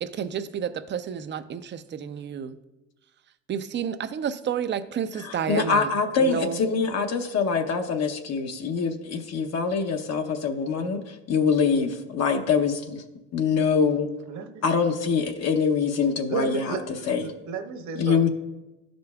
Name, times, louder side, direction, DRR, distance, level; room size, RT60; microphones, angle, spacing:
voice 1, 0.0-2.6 3.5-5.9 6.2-6.6, right 8 dB, 30° right, 12 dB, 0.6 m, -30 dB
voice 2, 5.2-13.0 13.3-14.1 14.6-16.8 17.1-17.3 18.0-18.3, left 5 dB, 45° left, 5 dB, 0.8 m, -24 dB
voice 3, 16.3-18.2, right 5 dB, 55° right, 5 dB, 1.3 m, -32 dB
14.0 x 5.2 x 2.3 m, 1.0 s
hypercardioid pair, 75°, 36 cm